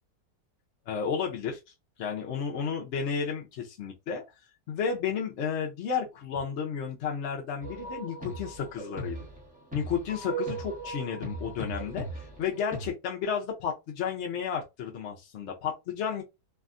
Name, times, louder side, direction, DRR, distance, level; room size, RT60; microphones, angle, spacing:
voice 1, 0.9-1.6 2.0-4.2 4.7-9.2 9.7-16.2, left 7 dB, 65° left, 0.7 m, -32 dB
sound 1, 7.6-12.9, right 2 dB, 5° right, 0.6 m, -38 dB
3.3 x 2.2 x 2.4 m
omnidirectional pair, 1.7 m